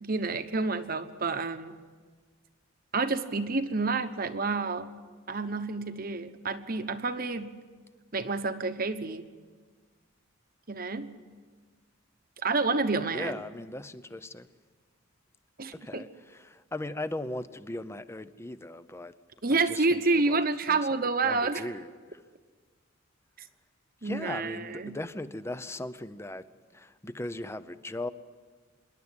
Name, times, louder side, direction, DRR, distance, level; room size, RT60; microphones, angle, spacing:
voice 1, 0.0-1.7 2.9-4.9 5.3-7.6 8.1-9.2 10.7-11.1 12.4-13.4 15.6-16.0 19.4-21.6 24.0-25.0, right 3 dB, 45° right, 10 dB, 1.1 m, -29 dB
voice 2, 13.1-14.5 15.7-19.1 19.5-20.4 20.7-21.0 21.2-22.2 24.0-26.5 26.7-28.1, left 1 dB, 15° left, 13 dB, 0.6 m, -38 dB
26.0 x 11.0 x 9.7 m, 1.5 s
head